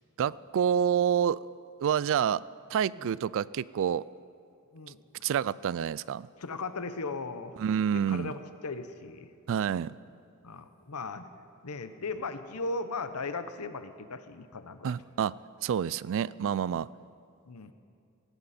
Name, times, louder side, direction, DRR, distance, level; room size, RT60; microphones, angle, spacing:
voice 1, 0.2-1.4 1.8-2.4 2.7-4.0 5.2-6.3 7.6-8.3 9.5-10.0 14.8-16.9, right 8 dB, 60° right, 20 dB, 0.3 m, -28 dB
voice 2, 4.7-5.2 6.4-7.6 8.1-9.3 10.4-11.3 11.6-14.9 17.5-17.7, left 3 dB, 85° left, 10 dB, 0.9 m, -37 dB
18.5 x 16.0 x 4.3 m, 2.4 s
head